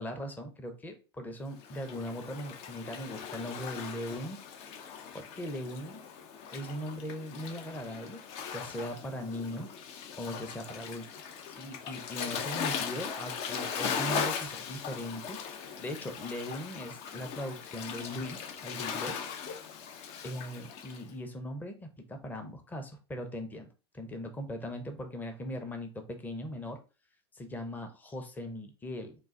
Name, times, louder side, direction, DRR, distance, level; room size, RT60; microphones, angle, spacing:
voice 1, 0.0-4.4 5.1-6.0 6.5-8.2 8.5-9.7 10.2-11.1 11.5-15.4 15.8-19.2 20.2-23.7 23.9-26.8 27.3-29.1, left 1 dB, 10° left, 5 dB, 0.7 m, -39 dB
Waves surf, 1.6-21.0, left 7 dB, 50° left, 0.6 m, -39 dB
3.8 x 2.5 x 3.6 m, 0.32 s
hypercardioid pair, 95°, 14 cm